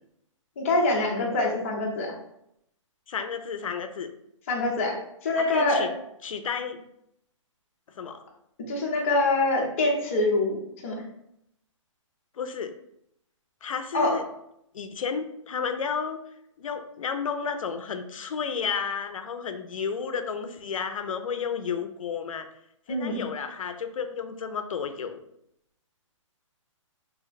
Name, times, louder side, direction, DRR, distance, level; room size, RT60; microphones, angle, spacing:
voice 1, 0.6-2.1 4.5-4.9 5.2-5.9 8.7-10.6 10.8-11.0 13.9-14.1 22.9-23.3, left 2 dB, 25° left, -2 dB, 0.6 m, -25 dB
voice 2, 3.1-4.1 5.4-5.9 6.2-6.8 7.9-8.2 12.4-12.7 13.6-14.2 14.7-16.2 16.6-22.5 22.9-25.2, left 6 dB, 80° left, 8 dB, 0.5 m, -32 dB
2.7 x 2.1 x 3.9 m, 0.76 s
hypercardioid pair, 170°, 17 cm